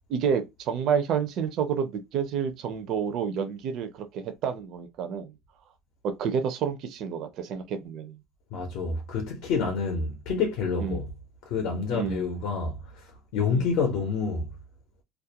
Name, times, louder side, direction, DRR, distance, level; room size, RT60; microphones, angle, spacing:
voice 1, 0.1-5.3 6.0-8.2 10.8-11.0 11.9-12.3 13.5-13.7, right 7 dB, 45° right, 0.4 m, -29 dB
voice 2, 8.5-11.1 11.5-13.0 13.3-14.5, left 5 dB, 55° left, 0.6 m, -28 dB
2.3 x 2.1 x 2.7 m
cardioid pair, 180°, 0 cm